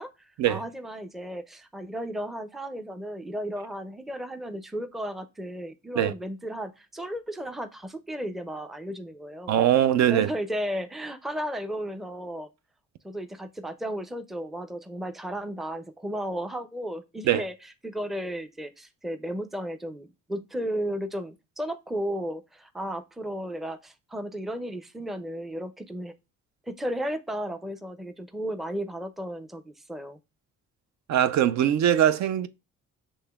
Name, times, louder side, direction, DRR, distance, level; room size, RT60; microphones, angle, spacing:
voice 1, 0.0-9.6 10.1-12.5 13.0-26.1 26.7-30.2, equal, ahead, 0.4 m, -34 dB
voice 2, 9.5-10.3 17.2-17.4 31.1-32.5, right 10 dB, 65° right, 0.4 m, -21 dB
6.9 x 2.9 x 2.2 m
cardioid pair, 90°, 30 cm